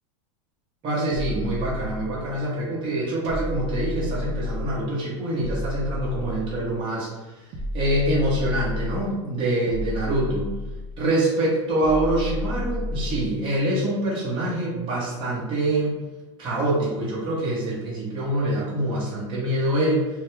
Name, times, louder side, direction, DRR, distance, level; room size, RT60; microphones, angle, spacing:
voice 1, 0.8-7.4 7.7-10.5 11.0-16.0 16.4-20.1, right 1 dB, 30° right, -7 dB, 0.9 m, -25 dB
sound 1, 1.1-2.4 3.2-4.9 5.4-6.8 7.5-9.1 9.7-11.1 11.8-13.4, left 1 dB, 50° right, 0.5 m, -31 dB
2.3 x 2.2 x 3.1 m, 1.1 s
supercardioid pair, 125°, 16 cm